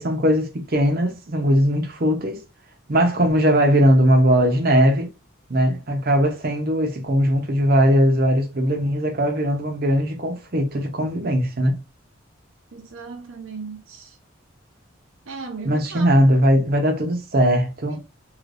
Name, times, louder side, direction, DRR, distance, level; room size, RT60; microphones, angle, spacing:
voice 1, 0.0-2.4 2.9-5.1 5.5-11.8 15.6-18.0, equal, 45° right, 0.8 m, -19 dB
voice 2, 12.7-14.1 15.3-16.1 17.9-18.0, right 4 dB, 90° right, 0.8 m, -36 dB
3.3 x 3.1 x 2.4 m
head